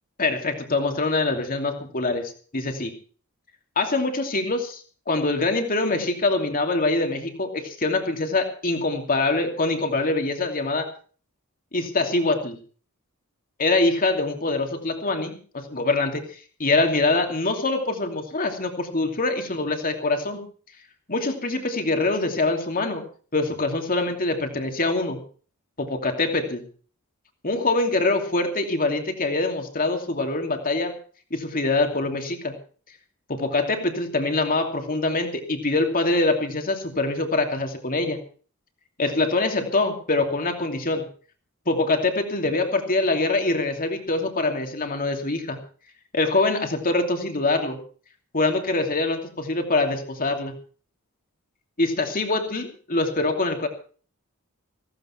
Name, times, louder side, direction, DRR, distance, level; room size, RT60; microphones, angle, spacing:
voice 1, 0.2-2.9 3.8-10.9 11.7-12.6 13.6-16.2 16.6-20.4 21.1-23.0 23.3-25.2 25.8-26.6 27.4-30.9 31.3-32.5 33.3-38.2 39.0-41.0 41.7-45.6 46.1-47.8 48.3-50.5 51.8-53.7, left 2 dB, 40° left, 4 dB, 2.8 m, -24 dB
16.0 x 15.5 x 4.6 m, 0.42 s
head